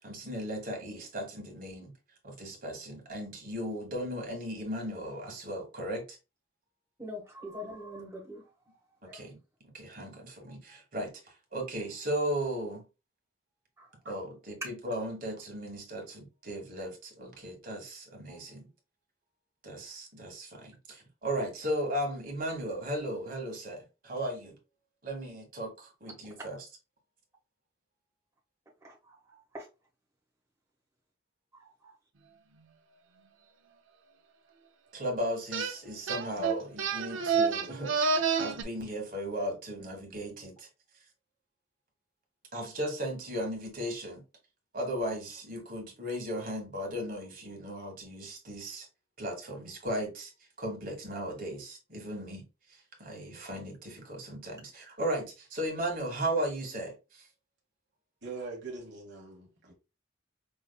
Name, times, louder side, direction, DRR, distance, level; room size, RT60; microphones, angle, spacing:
voice 1, 0.0-1.9 2.2-6.2 9.0-9.4 9.7-11.1 11.5-12.8 14.0-18.7 19.6-24.5 25.0-26.6 34.9-37.9 38.4-40.7 42.5-44.2 44.7-48.9 49.2-50.3 50.6-57.3, right 1 dB, 45° right, 1.6 m, -36 dB
voice 2, 7.0-8.4 9.1-9.2 13.8-13.9 28.8-29.7 31.5-31.9, left 1 dB, 15° right, 1.4 m, -44 dB
sound 1, 35.5-35.7 36.1-38.6, right 5 dB, 90° right, 0.6 m, -29 dB
voice 3, 58.2-59.7, right 4 dB, 65° right, 1.2 m, -42 dB
5.5 x 3.0 x 2.3 m
head